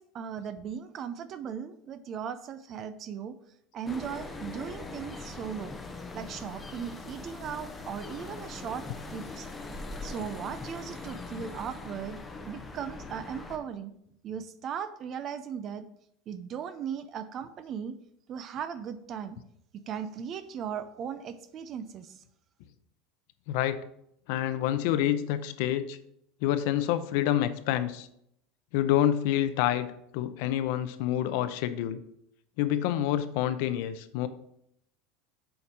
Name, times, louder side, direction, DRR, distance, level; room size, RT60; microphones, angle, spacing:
voice 1, 0.0-3.4 3.7-5.7 6.1-8.9 9.1-9.5 10.0-12.2 12.5-13.9 14.2-15.9 16.3-18.0 18.3-19.4 19.7-22.2, right 7 dB, 30° right, 13 dB, 0.5 m, -37 dB
sound 1, 3.8-13.6, left 3 dB, 10° left, 0.7 m, -41 dB
voice 2, 23.5-23.8 24.3-26.0 26.4-28.1 28.7-32.0 32.6-34.3, left 11 dB, 60° left, 12 dB, 0.6 m, -27 dB
7.0 x 5.2 x 5.9 m, 0.74 s
supercardioid pair, 170°, 0 cm